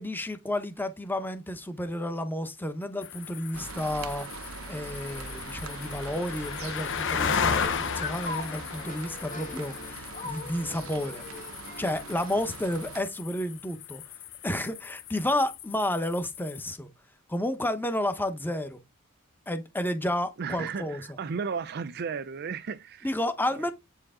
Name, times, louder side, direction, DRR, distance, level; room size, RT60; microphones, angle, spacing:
voice 1, 0.0-11.2 11.8-14.0 14.4-16.9 17.3-18.8 19.5-21.0 23.0-23.7, left 1 dB, 10° left, 1.0 m, -31 dB
sound 1, 3.0-16.7, left 6 dB, 60° left, 1.0 m, -35 dB
sound 2, 3.5-13.0, right 5 dB, 70° right, 0.8 m, -43 dB
sound 3, 7.0-12.4, left 3 dB, 35° left, 1.5 m, -42 dB
voice 2, 20.4-23.1 23.5-23.7, right 5 dB, 50° right, 0.5 m, -34 dB
8.6 x 4.6 x 3.7 m
head